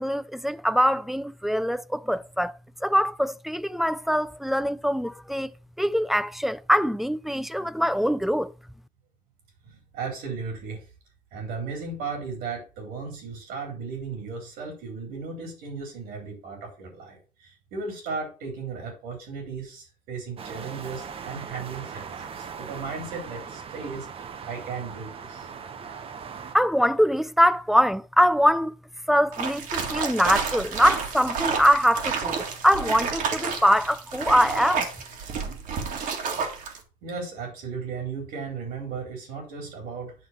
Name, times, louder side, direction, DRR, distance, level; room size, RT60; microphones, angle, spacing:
voice 1, 0.0-8.5 26.5-28.7 29.1-34.9, equal, ahead, 0.3 m, -23 dB
voice 2, 9.6-10.9 11.3-25.5 37.0-40.1, right 4 dB, 85° right, 3.6 m, -36 dB
sound 1, 20.4-26.6, right 6 dB, 40° right, 0.8 m, -39 dB
sound 2, 29.3-36.8, right 6 dB, 60° right, 1.8 m, -30 dB
9.4 x 3.4 x 5.8 m
cardioid pair, 115°, 15 cm